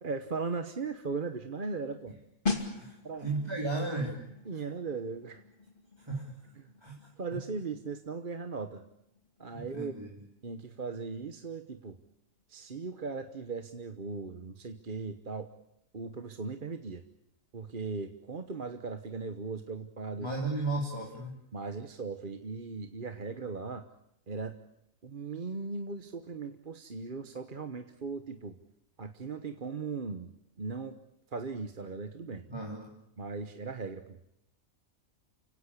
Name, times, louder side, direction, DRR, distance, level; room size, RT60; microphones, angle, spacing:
voice 1, 0.0-2.1 3.0-3.3 4.4-5.4 6.6-6.7 7.2-8.8 9.4-9.9 10.4-12.0 12.5-15.5 15.9-17.0 17.5-20.3 21.5-23.8 24.3-24.6 25.0-28.6 29.0-30.3 30.6-31.0 31.3-32.4 33.2-34.3, right 4 dB, 40° right, 8 dB, 1.3 m, -38 dB
sound 1, 2.5-13.0 13.2-13.5, left 4 dB, 40° left, 2.7 m, -42 dB
voice 2, 2.5-3.0 3.2-4.3 6.0-6.3 6.8-7.0 9.5-10.1 20.2-21.4 32.5-32.9, right 2 dB, 20° right, -1 dB, 3.2 m, -34 dB
30.0 x 17.0 x 8.4 m, 0.81 s
omnidirectional pair, 1.4 m